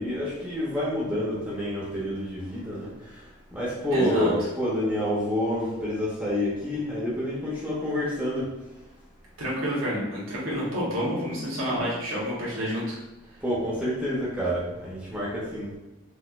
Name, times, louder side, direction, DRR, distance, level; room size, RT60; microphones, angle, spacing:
voice 1, 0.0-8.5 13.4-15.7, equal, 5° right, -8 dB, 0.7 m, -28 dB
voice 2, 3.9-4.3 9.4-13.0, equal, 85° right, -6 dB, 1.1 m, -29 dB
4.2 x 2.4 x 2.3 m, 0.99 s
head